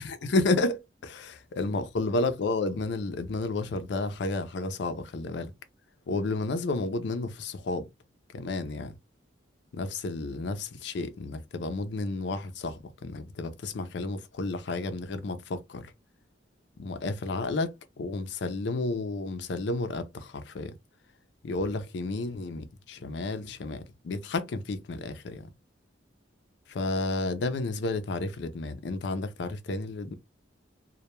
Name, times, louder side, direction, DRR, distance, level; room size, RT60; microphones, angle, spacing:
voice 1, 0.0-5.5 6.1-7.9 8.3-8.9 9.7-15.9 16.8-20.8 21.4-25.5 26.7-30.1, left 3 dB, 65° left, 0.4 m, -31 dB
2.1 x 2.1 x 2.9 m
head